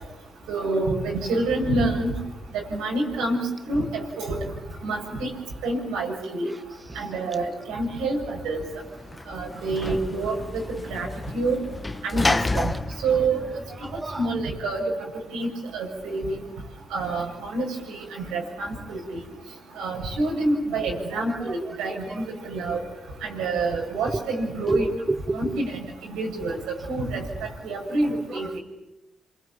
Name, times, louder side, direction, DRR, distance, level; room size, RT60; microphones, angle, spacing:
voice 1, 0.5-2.2 2.5-4.4 4.8-5.3 5.6-6.5 6.9-8.6 9.3-11.1 11.3-11.6 12.0-12.7 13.0-13.4 14.2-14.9 15.3-16.4 16.9-19.2 19.8-22.8 23.2-24.9 25.3-26.6 26.9-28.6, right 2 dB, 85° right, -2 dB, 7.4 m, -27 dB
Sliding door / Slam, 8.5-14.3, left 2 dB, 25° left, 1.0 m, -30 dB
voice 2, 13.8-14.2 21.3-21.5 24.7-25.4, right 2 dB, 25° right, 10 dB, 1.4 m, -27 dB
28.0 x 23.0 x 8.7 m, 0.98 s
supercardioid pair, 50°, 0 cm